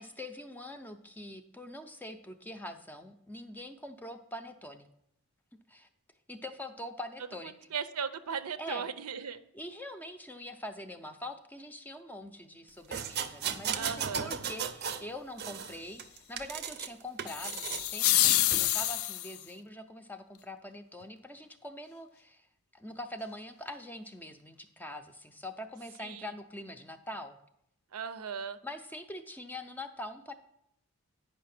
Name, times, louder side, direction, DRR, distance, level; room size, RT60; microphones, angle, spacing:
voice 1, 0.0-4.9 5.7-5.9 6.3-7.5 8.6-8.9 9.5-27.4 28.6-30.3, left 1 dB, 10° left, 7 dB, 0.5 m, -44 dB
voice 2, 7.4-9.4 13.7-14.3 26.0-26.3 27.9-28.6, right 6 dB, 85° right, 12 dB, 0.6 m, -37 dB
sound 1, 12.9-15.1 15.4-16.9 17.2-17.9 18.5-18.7, right 7 dB, 45° right, 0.5 m, -36 dB
sound 2, 17.3-19.5, left 14 dB, 70° left, 0.4 m, -27 dB
9.2 x 5.6 x 5.9 m, 0.75 s
head